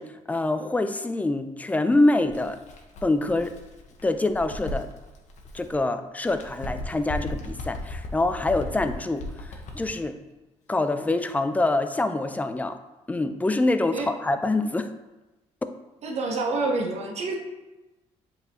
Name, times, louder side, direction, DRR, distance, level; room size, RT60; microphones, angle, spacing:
voice 1, 0.0-2.6 3.0-3.5 4.0-4.9 5.5-10.2 10.7-12.8 13.1-14.9, left 2 dB, 10° left, 9 dB, 0.4 m, -25 dB
Bird, 2.2-5.8 6.2-10.0, left 2 dB, 70° left, 0.9 m, -37 dB
voice 2, 16.0-17.4, right 3 dB, 60° right, 2 dB, 1.0 m, -27 dB
7.9 x 4.0 x 2.9 m, 1.1 s
cardioid pair, 115°, 13 cm